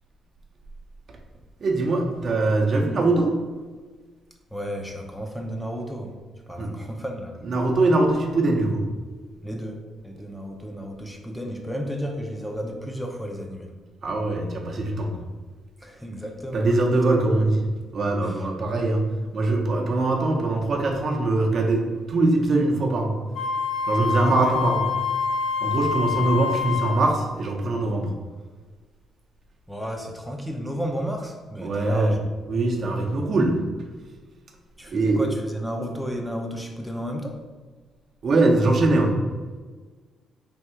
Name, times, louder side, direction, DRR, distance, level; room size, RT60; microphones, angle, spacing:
voice 1, 1.6-3.3 6.6-6.7 7.4-8.8 14.0-15.2 16.5-17.6 17.9-19.0 19.3-21.8 22.1-23.1 23.9-24.8 25.6-28.1 31.6-32.2 32.5-33.6 34.9-35.2 38.2-39.1, right 2 dB, 50° right, 1 dB, 0.7 m, -22 dB
voice 2, 4.5-6.1 6.5-7.4 9.4-13.7 15.8-17.2 18.2-18.4 24.2-24.5 29.7-32.2 34.8-37.4, equal, 5° left, 2 dB, 0.5 m, -33 dB
Wind instrument woodwind instrument, 23.3-27.1, left 5 dB, 55° left, 1.4 m, -26 dB
3.5 x 2.7 x 4.4 m, 1.4 s
cardioid pair, 90°, 0 cm